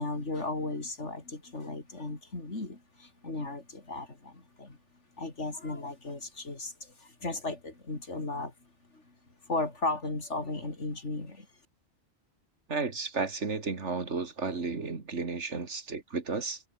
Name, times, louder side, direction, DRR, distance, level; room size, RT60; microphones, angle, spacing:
voice 1, 0.0-4.8 5.2-8.5 8.9-9.1 9.5-11.5, left 2 dB, 85° left, 4.4 m, -35 dB
voice 2, 12.7-16.6, right 4 dB, 80° right, 2.7 m, -33 dB
omnidirectional pair, 1.2 m